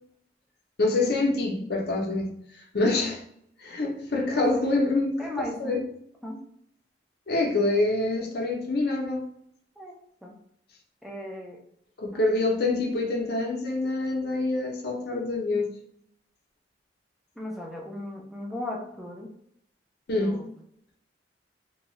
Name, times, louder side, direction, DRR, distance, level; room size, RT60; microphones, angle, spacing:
voice 1, 0.8-2.3 2.7-3.2 3.6-5.2 5.6-5.8 7.3-9.3 12.0-15.7 20.1-20.4, left 2 dB, 60° left, 1 dB, 0.6 m, -26 dB
voice 2, 4.3-5.8 6.2-6.4 9.8-9.9 10.2-10.4 11.0-11.6 12.1-12.2 17.4-19.3 20.2-20.5, left 1 dB, ahead, -2 dB, 0.5 m, -37 dB
2.7 x 2.3 x 3.0 m, 0.70 s
head